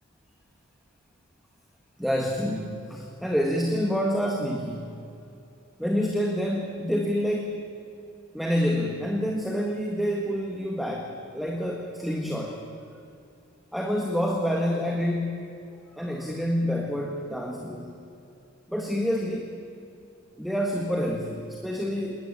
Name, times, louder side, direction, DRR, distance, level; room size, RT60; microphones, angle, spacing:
voice 1, 2.0-5.0 5.8-7.7 8.3-12.6 13.7-15.5 15.9-17.9 18.7-19.5 20.4-22.2, equal, ahead, 0 dB, 1.7 m, -28 dB
21.0 x 19.0 x 8.7 m, 2.6 s
head